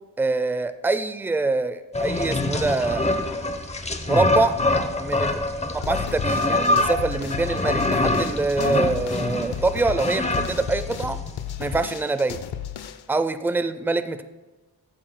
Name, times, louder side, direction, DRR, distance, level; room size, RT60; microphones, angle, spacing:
voice 1, 0.2-3.3 4.1-4.6 5.0-11.2 11.6-12.4 13.1-14.2, right 3 dB, 5° right, 12 dB, 0.4 m, -25 dB
sound 1, 1.9-11.4, left 2 dB, 15° left, 0.8 m, -25 dB
sound 2, 5.8-13.2, left 9 dB, 75° left, 0.6 m, -34 dB
14.0 x 9.0 x 2.2 m, 1.1 s
wide cardioid pair, 105°, 39 cm